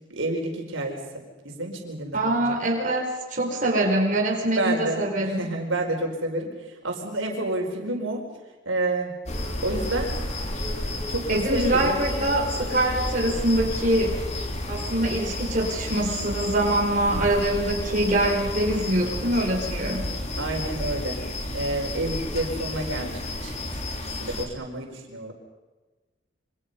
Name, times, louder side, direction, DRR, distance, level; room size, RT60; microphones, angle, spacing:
voice 1, 0.1-2.6 4.5-8.2 8.6-9.2 9.6-10.1 11.1-12.3 20.4-21.2 21.5-23.5 24.2-25.3, right 2 dB, 80° right, 1 dB, 4.8 m, -29 dB
voice 2, 2.1-5.5 11.3-14.2 14.7-20.1, right 1 dB, 40° right, -2 dB, 5.1 m, -24 dB
sound 1, 9.3-24.5, left 1 dB, 35° left, 3.0 m, -31 dB
27.5 x 25.5 x 5.6 m, 1.2 s
head